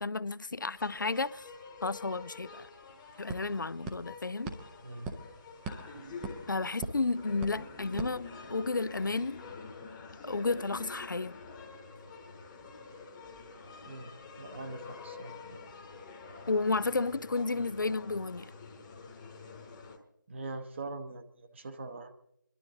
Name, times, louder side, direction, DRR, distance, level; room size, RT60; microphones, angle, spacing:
voice 1, 0.0-1.5 1.8-2.7 3.2-4.5 6.5-9.4 10.2-11.4 16.5-18.5, left 3 dB, 75° left, 0.4 m, -32 dB
sound 1, 0.7-20.0, left 4 dB, 15° left, 1.1 m, -47 dB
sound 2, 2.2-2.3 2.5-8.9, right 4 dB, 10° right, 0.5 m, -44 dB
voice 2, 14.4-15.6 20.3-22.1, right 3 dB, 35° right, 1.0 m, -42 dB
26.0 x 11.5 x 3.9 m
figure-of-eight pair, 155°, 11 cm